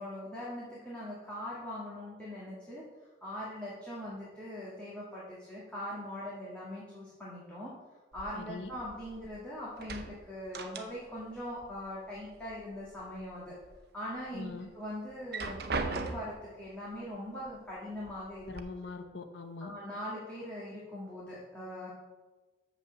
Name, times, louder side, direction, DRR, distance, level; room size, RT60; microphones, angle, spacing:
voice 1, 0.0-2.8 3.2-7.7 8.1-13.6 13.9-18.5 19.6-21.9, left 1 dB, 5° left, -8 dB, 1.9 m, -41 dB
sound 1, 8.1-9.4 9.7-11.3 11.6-12.6 13.0-13.8 14.2-14.3 15.1-16.5 17.5-17.6 18.0-18.6, right 3 dB, 55° right, 0.7 m, -39 dB
voice 2, 8.3-8.7 14.3-14.7 18.4-19.7, left 3 dB, 70° left, 6 dB, 0.8 m, -42 dB
6.8 x 5.8 x 6.9 m, 1.2 s
head